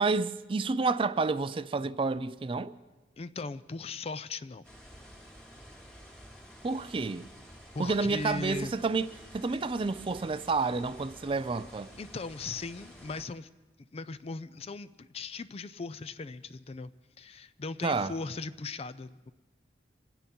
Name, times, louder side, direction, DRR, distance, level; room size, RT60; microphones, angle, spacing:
voice 1, 0.0-2.7 6.6-7.3 7.8-9.1 9.3-11.9 17.8-18.1, right 4 dB, 30° right, 0.4 m, -29 dB
voice 2, 3.2-4.6 7.7-8.7 12.0-13.5 13.9-16.9 17.2-19.3, left 3 dB, 35° left, 0.4 m, -38 dB
sound 1, 4.6-13.3, equal, 5° left, 2.2 m, -51 dB
25.5 x 9.2 x 5.4 m
head